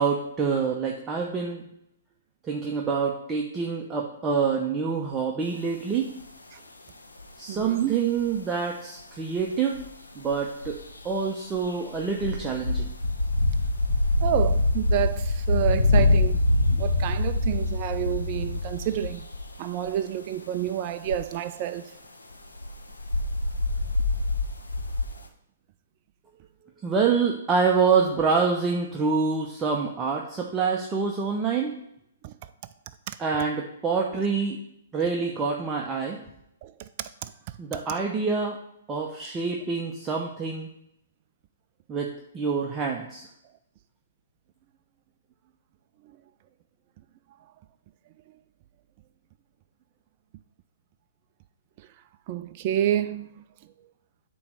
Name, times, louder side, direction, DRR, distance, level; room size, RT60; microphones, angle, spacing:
voice 1, 0.0-1.6 2.5-6.1 7.4-9.8 10.2-10.8 11.0-12.9 26.8-31.8 33.2-34.6 34.9-36.2 37.6-38.6 38.9-40.7 41.9-43.2, right 5 dB, 20° right, 0.8 m, -26 dB
sound 1, 6.2-6.3 7.2-7.3 7.6-7.7 9.4-9.5 9.8-9.9 10.3-10.4 10.6-11.1 11.5-19.5 19.9-20.0 21.1-21.2 22.3-25.0, left 2 dB, 90° left, 1.1 m, -25 dB
voice 2, 7.5-7.9 14.2-16.4 16.7-19.3 19.6-21.9 32.2-32.3 33.1-33.2 36.6-36.7 37.2-37.3 52.3-53.3, right 11 dB, 40° right, 0.4 m, -29 dB
8.4 x 3.1 x 6.4 m
hypercardioid pair, 125°, 0 cm